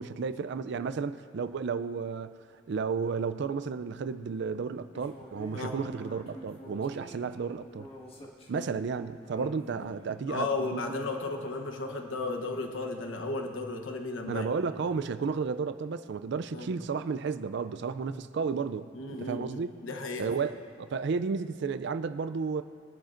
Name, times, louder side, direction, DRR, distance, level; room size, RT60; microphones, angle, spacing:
voice 1, 0.0-2.3 2.7-7.9 8.5-10.9 14.2-19.7 20.2-22.6, right 5 dB, 60° right, 12 dB, 0.4 m, -33 dB
sound 1, 4.9-10.2 10.9-13.1, equal, 30° left, 1.6 m, -49 dB
voice 2, 9.4-9.9 10.3-14.5 16.5-16.7 18.9-20.3, left 3 dB, 75° left, 4 dB, 1.0 m, -35 dB
22.0 x 11.5 x 2.5 m, 2.2 s
head